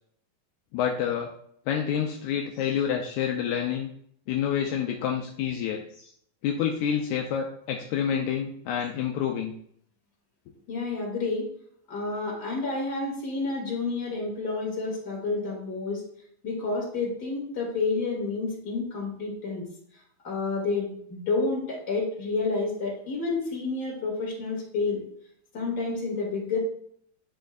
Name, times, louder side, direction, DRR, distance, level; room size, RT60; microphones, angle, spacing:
voice 1, 0.7-1.3 1.7-3.9 4.3-6.1 6.4-9.5, left 8 dB, 80° left, 2 dB, 1.9 m, -28 dB
voice 2, 10.7-11.5 11.9-16.0 16.4-19.6 20.2-25.0 25.5-26.6, left 3 dB, 35° left, -3 dB, 2.7 m, -29 dB
10.5 x 5.3 x 2.5 m, 0.66 s
omnidirectional pair, 3.6 m